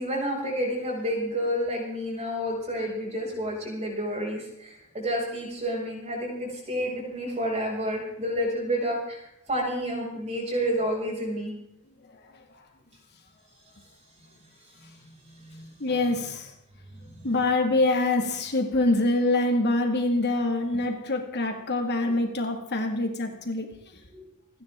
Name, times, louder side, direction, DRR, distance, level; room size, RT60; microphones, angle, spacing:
voice 1, 0.0-9.2 9.5-11.5 14.8-14.9 15.2-15.7 17.0-17.1 24.1-24.3, equal, 30° right, -2 dB, 6.3 m, -30 dB
voice 2, 15.8-16.5 17.2-23.7, left 2 dB, 50° left, 4 dB, 2.1 m, -25 dB
29.0 x 10.5 x 3.7 m, 0.81 s
head